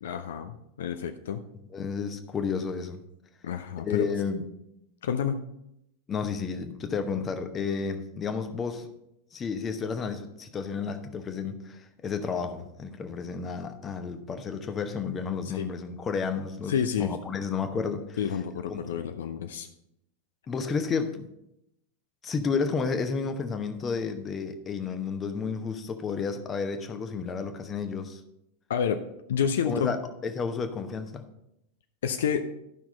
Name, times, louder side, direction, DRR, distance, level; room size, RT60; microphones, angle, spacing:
voice 1, 0.0-1.4 3.4-4.1 5.0-5.4 15.4-15.7 16.7-17.1 18.2-19.7 28.7-29.0 29.3-29.9 32.0-32.5, left 7 dB, 60° left, 8 dB, 0.5 m, -29 dB
voice 2, 1.7-3.0 3.8-4.4 6.1-8.9 9.3-16.7 17.0-18.2 18.7-19.0 20.5-21.3 22.2-28.2 29.7-30.0 30.2-31.2, left 5 dB, 20° left, 7 dB, 0.9 m, -31 dB
12.0 x 5.9 x 4.1 m, 0.82 s
figure-of-eight pair, 90°, 0 cm